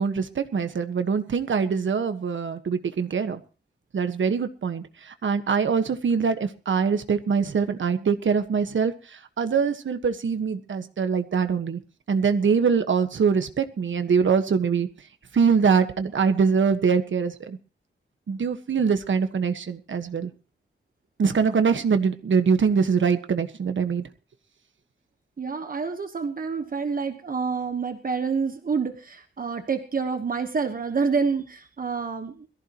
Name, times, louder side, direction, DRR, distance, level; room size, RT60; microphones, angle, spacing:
voice 1, 0.0-3.4 3.9-11.8 12.1-14.9 15.3-17.6 18.3-20.3 21.2-24.0, right 6 dB, 65° right, 8 dB, 1.5 m, -23 dB
voice 2, 25.4-32.5, right 5 dB, 45° right, 7 dB, 1.2 m, -28 dB
21.5 x 15.0 x 3.0 m, 0.36 s
wide cardioid pair, 170°, 21 cm